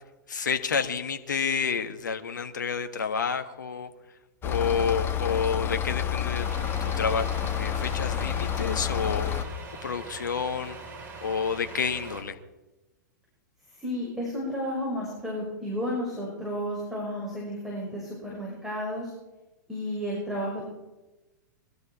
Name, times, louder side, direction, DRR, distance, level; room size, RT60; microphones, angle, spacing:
voice 1, 0.3-3.9 4.4-6.5 6.8-9.3 9.8-10.8 11.2-12.3, left 6 dB, 75° left, 7 dB, 1.6 m, -29 dB
sound 1, 4.4-9.4, left 9 dB, 20° left, 1.7 m, -29 dB
Truck, 6.4-12.2, right 3 dB, 20° right, 4.9 m, -42 dB
voice 2, 13.7-19.1 19.7-20.6, equal, 5° right, -4 dB, 6.1 m, -32 dB
22.5 x 12.5 x 4.8 m, 1.0 s
figure-of-eight pair, 105°, 10 cm